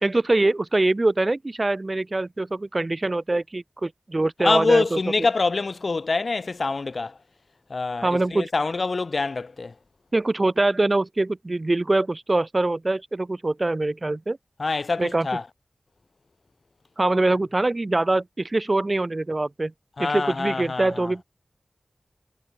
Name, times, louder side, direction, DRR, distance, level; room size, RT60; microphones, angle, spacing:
voice 1, 0.0-5.0 8.0-8.5 10.1-14.4 15.0-15.3 17.0-19.7 20.0-21.2, right 2 dB, 40° right, 2.3 m, -23 dB
voice 2, 4.4-7.2 7.7-9.7 14.6-15.5 20.0-21.1, left 3 dB, 65° left, 2.9 m, -25 dB
wide cardioid pair, 75°, 0 cm